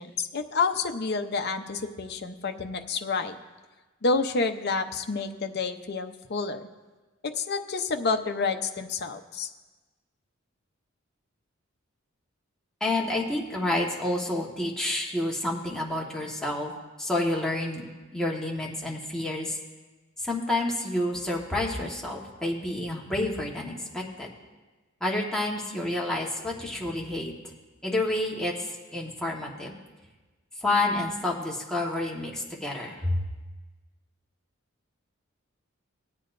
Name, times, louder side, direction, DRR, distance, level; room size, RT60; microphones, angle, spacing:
voice 1, 0.0-3.4 4.0-6.6 7.4-9.5, left 4 dB, 50° left, 6 dB, 0.7 m, -29 dB
voice 2, 12.8-16.7 17.0-17.8 18.1-19.6 20.2-24.3 25.0-27.3 27.8-28.5 28.9-29.7 30.6-33.2, left 1 dB, 5° left, -3 dB, 1.3 m, -29 dB
19.5 x 8.4 x 2.6 m, 1.2 s
head